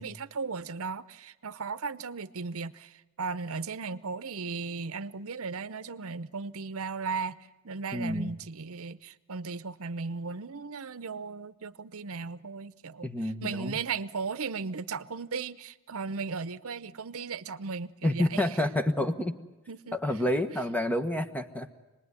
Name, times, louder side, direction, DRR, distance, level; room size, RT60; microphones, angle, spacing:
voice 1, 0.0-18.5 19.7-20.3, right 4 dB, 70° right, 0.8 m, -36 dB
voice 2, 7.9-8.3 13.0-13.8 18.0-19.4 19.9-21.7, left 1 dB, 5° left, 1.2 m, -29 dB
27.5 x 20.0 x 9.7 m
head